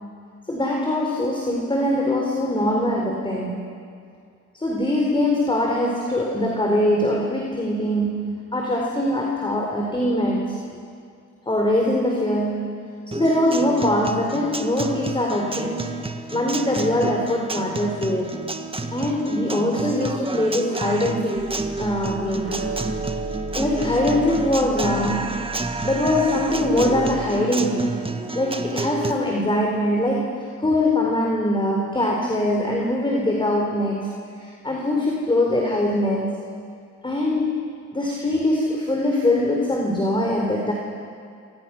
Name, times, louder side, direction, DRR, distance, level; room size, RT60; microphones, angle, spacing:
voice 1, 0.5-3.6 4.5-10.6 11.5-15.8 16.3-18.4 18.9-21.5 21.8-22.6 23.5-25.4 25.8-28.0 28.3-34.1 34.4-36.4 37.0-37.7 37.9-40.7, left 1 dB, 15° left, -1 dB, 4.2 m, -22 dB
Guitar, 13.1-29.1, right 3 dB, 20° right, 1.7 m, -30 dB
sound 1, 21.3-27.3, right 3 dB, 45° right, 4.5 m, -34 dB
28.5 x 24.0 x 6.2 m, 2.3 s
cardioid pair, 90°, 30 cm